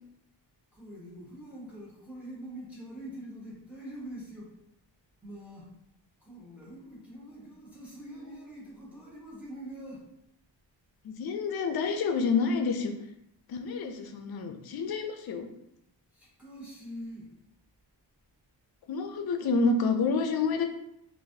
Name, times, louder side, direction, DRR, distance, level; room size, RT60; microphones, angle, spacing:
voice 1, 0.7-4.6 5.2-5.7 6.2-10.1 16.1-17.3, right 1 dB, 5° right, -5 dB, 0.9 m, -44 dB
voice 2, 11.0-12.9 13.5-15.5 18.9-20.7, left 4 dB, 55° left, 6 dB, 0.5 m, -28 dB
3.9 x 2.6 x 2.7 m, 0.79 s
wide cardioid pair, 160°, 45 cm